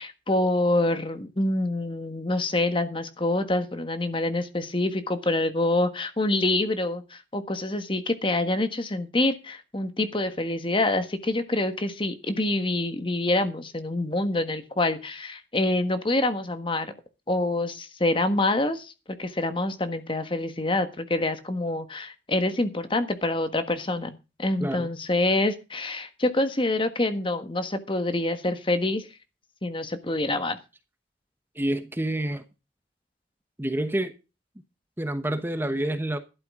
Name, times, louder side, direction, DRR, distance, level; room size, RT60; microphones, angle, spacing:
voice 1, 0.0-16.9 17.3-24.1 24.4-29.1 29.6-30.6, left 2 dB, 30° left, 9 dB, 1.5 m, -26 dB
voice 2, 31.5-32.4 33.6-34.1 35.0-36.2, right 1 dB, 10° right, 9 dB, 1.0 m, -28 dB
12.5 x 12.0 x 3.7 m, 0.29 s
head